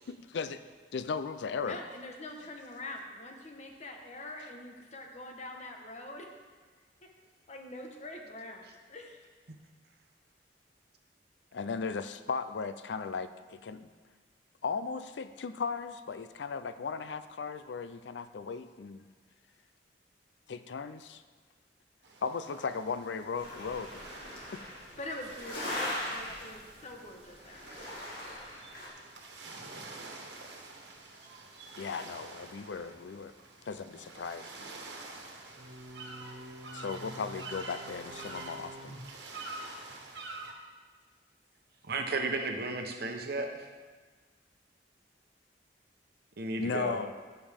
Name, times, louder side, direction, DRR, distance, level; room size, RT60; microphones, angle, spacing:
voice 1, 0.1-0.6 0.9-1.8 4.4-4.5 11.5-13.9 14.6-19.1 20.5-21.2 22.2-24.0 24.5-24.6 31.8-33.3 33.7-34.5 36.7-39.0 46.6-47.1, left 5 dB, 85° left, 11 dB, 0.5 m, -36 dB
voice 2, 1.6-6.3 7.0-7.1 7.5-9.2 24.5-24.6 25.0-27.6, left 1 dB, 40° left, 2 dB, 1.2 m, -44 dB
sound 1, 22.0-40.5, right 2 dB, 85° right, 1.4 m, -47 dB
sound 2, 23.4-27.0 27.4-28.9, left 1 dB, 65° left, 2.4 m, -39 dB
voice 3, 41.8-43.6 46.4-47.0, right 3 dB, 65° right, 4 dB, 1.0 m, -33 dB
14.0 x 7.0 x 3.6 m, 1.4 s
head